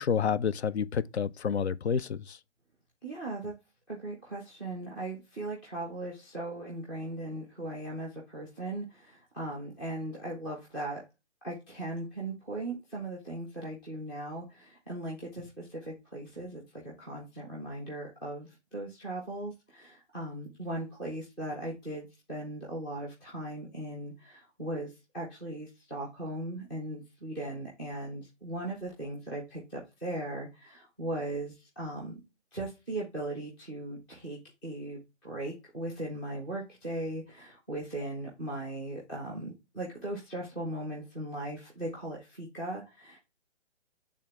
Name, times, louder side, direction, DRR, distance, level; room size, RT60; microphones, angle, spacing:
voice 1, 0.0-2.4, left 7 dB, 70° left, 0.6 m, -29 dB
voice 2, 3.0-3.5 3.9-11.0 11.4-32.2 32.5-43.2, right 1 dB, 5° left, 0.4 m, -38 dB
8.7 x 3.5 x 3.4 m
hypercardioid pair, 145°, 35 cm